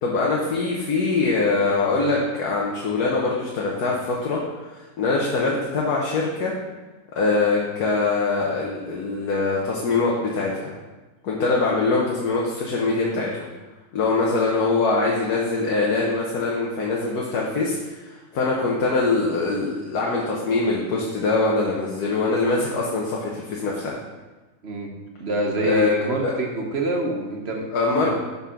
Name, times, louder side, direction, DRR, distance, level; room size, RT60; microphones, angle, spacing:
voice 1, 0.0-4.4 4.7-6.5 7.2-10.7 11.2-13.5 13.9-24.0 25.6-25.9 26.2-26.3 27.7-28.1, left 3 dB, 90° left, -3 dB, 1.5 m, -23 dB
voice 2, 25.2-27.7 28.0-28.1, right 1 dB, 50° right, 1 dB, 1.1 m, -26 dB
5.9 x 5.6 x 5.7 m, 1.2 s
omnidirectional pair, 1.6 m